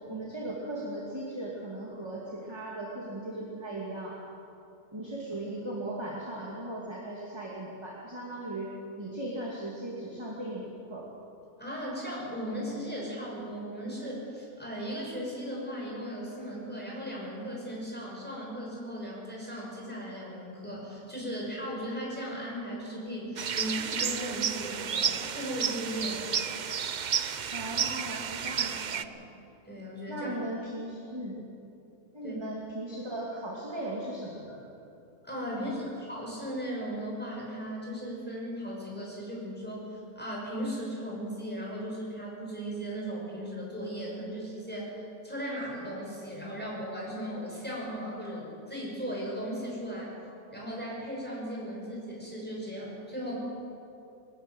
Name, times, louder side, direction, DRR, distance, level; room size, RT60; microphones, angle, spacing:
voice 1, 0.1-4.2 4.9-8.7 9.0-11.1 27.5-29.0 30.1-31.4 32.1-34.6 35.5-35.9, right 1 dB, 15° right, -4 dB, 2.5 m, -38 dB
voice 2, 11.6-26.4 28.7-29.1 29.6-30.3 32.2-32.3 35.2-50.1 50.5-53.4, equal, 5° left, -4 dB, 6.0 m, -37 dB
sound 1, 23.4-29.0, right 7 dB, 85° right, 0.4 m, -31 dB
21.0 x 13.5 x 9.3 m, 2.8 s
omnidirectional pair, 1.7 m